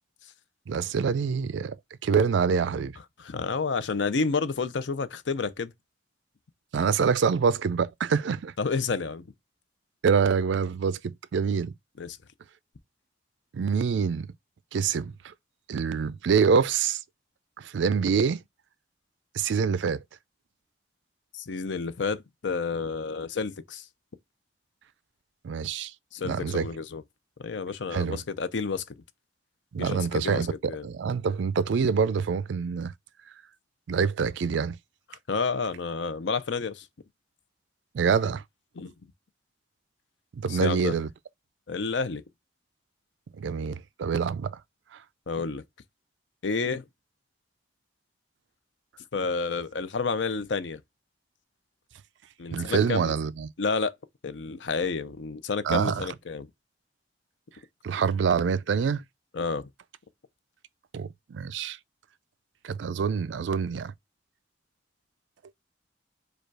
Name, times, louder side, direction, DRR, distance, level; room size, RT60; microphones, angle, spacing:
voice 1, 0.7-1.8 2.0-2.9 6.7-8.5 10.0-11.7 13.5-14.3 14.7-15.3 15.7-17.0 17.6-18.4 19.3-20.0 25.4-25.9 26.2-26.7 27.9-28.2 29.7-32.9 33.9-34.8 37.9-38.4 40.3-41.1 43.4-44.6 44.9-45.0 52.5-53.5 55.6-56.1 57.8-59.0 60.9-61.8 62.6-63.9, right 6 dB, 80° right, 0.4 m, -26 dB
voice 2, 3.2-5.7 8.6-9.2 12.0-12.2 21.3-23.8 26.1-27.0 27.4-28.8 29.8-30.4 30.7-30.8 35.3-36.9 38.8-38.9 40.5-41.0 41.7-42.2 45.3-45.6 46.4-46.8 49.1-50.8 52.4-53.1 53.6-53.9 54.2-56.5 59.3-59.7, left 4 dB, 80° left, 0.6 m, -30 dB
4.9 x 2.4 x 4.6 m
head